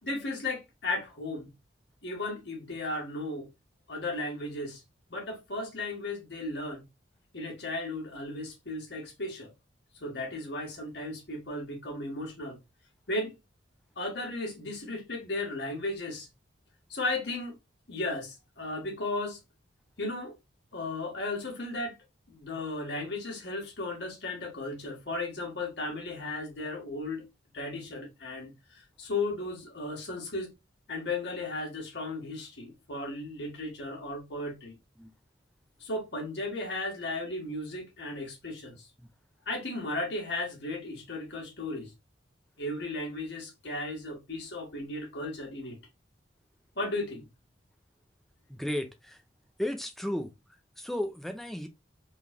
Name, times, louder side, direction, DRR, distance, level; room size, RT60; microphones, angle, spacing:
voice 1, 0.0-1.5 2.0-3.5 3.9-4.8 5.1-6.8 7.3-9.5 10.0-12.6 13.1-13.3 14.0-16.3 16.9-17.6 17.9-19.4 20.0-20.4 20.7-22.0 22.3-27.2 27.5-30.5 30.9-34.7 35.8-38.9 39.4-41.9 42.6-45.8 46.7-47.3, left 2 dB, 60° left, 1.7 m, -35 dB
voice 2, 48.5-49.2 49.6-50.3 50.8-51.7, left 1 dB, ahead, 0.6 m, -34 dB
3.9 x 3.2 x 2.3 m
head